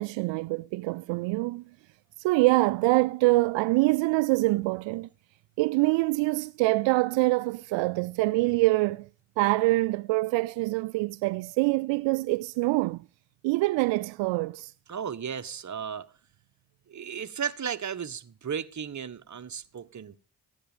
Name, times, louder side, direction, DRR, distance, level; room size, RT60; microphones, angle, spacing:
voice 1, 0.0-1.6 2.2-5.1 5.6-9.1 9.4-13.0 13.4-14.7, right 22 dB, 80° right, 0.5 m, -25 dB
voice 2, 14.9-16.1 16.9-20.2, right 7 dB, 40° right, 1.3 m, -35 dB
15.5 x 10.0 x 5.0 m
supercardioid pair, 50°, 43 cm